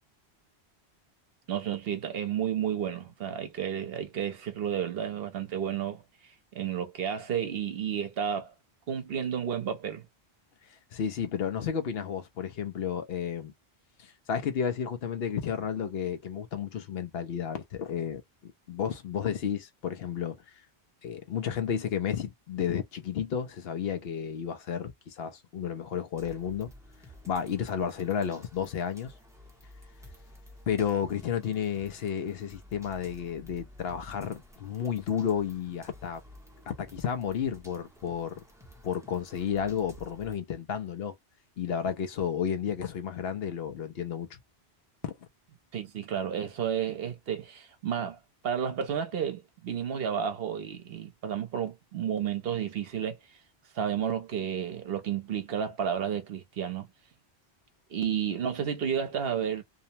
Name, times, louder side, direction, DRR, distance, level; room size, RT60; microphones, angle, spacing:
voice 1, 1.5-6.0 6.5-8.5 8.9-10.1 45.7-48.2 48.4-53.2 53.7-56.9 57.9-59.6, right 8 dB, 65° right, 0.9 m, -31 dB
voice 2, 10.7-13.5 14.0-20.4 21.0-26.7 27.3-29.1 30.7-36.2 36.7-38.4 38.8-41.2 41.6-44.4 45.0-45.1, left 8 dB, 70° left, 0.8 m, -32 dB
sound 1, 26.2-40.3, left 1 dB, 5° right, 0.7 m, -53 dB
2.7 x 2.0 x 2.7 m
omnidirectional pair, 1.1 m